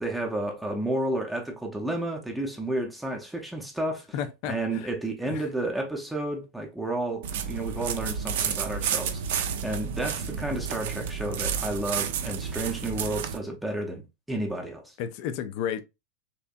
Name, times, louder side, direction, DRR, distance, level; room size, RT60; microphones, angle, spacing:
voice 1, 0.0-4.0 4.4-9.2 9.6-14.0 14.3-14.9, right 1 dB, 5° right, 0.6 m, -31 dB
voice 2, 4.1-4.9 5.3-5.4 15.0-15.8, left 9 dB, 45° left, 0.4 m, -32 dB
sound 1, 7.2-13.4, right 7 dB, 55° right, 0.4 m, -31 dB
3.3 x 2.9 x 2.3 m
figure-of-eight pair, 90°, 0 cm